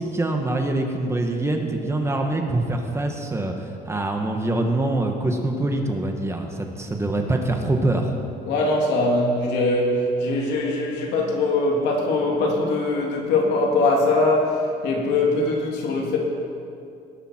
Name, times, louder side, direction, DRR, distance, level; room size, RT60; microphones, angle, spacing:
voice 1, 0.0-8.1, right 2 dB, 15° right, 3 dB, 1.6 m, -24 dB
voice 2, 8.5-16.2, left 2 dB, 85° left, -1 dB, 3.1 m, -22 dB
19.0 x 11.0 x 4.6 m, 2.5 s
cardioid pair, 110°, 17 cm